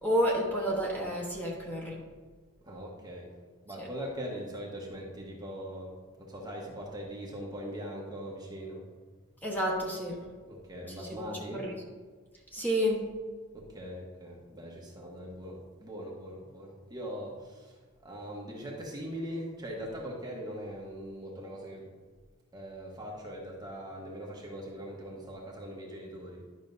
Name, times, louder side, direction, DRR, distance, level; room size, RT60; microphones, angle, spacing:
voice 1, 0.0-2.0 3.8-3.9 9.4-10.3 10.9-11.8 12.5-13.0, equal, 10° left, -3 dB, 1.2 m, -30 dB
voice 2, 2.6-3.3 3.6-8.8 10.5-11.6 13.5-17.7 18.0-21.9 22.5-26.4, equal, 20° right, -2 dB, 1.2 m, -41 dB
11.0 x 6.1 x 2.7 m, 1.5 s
head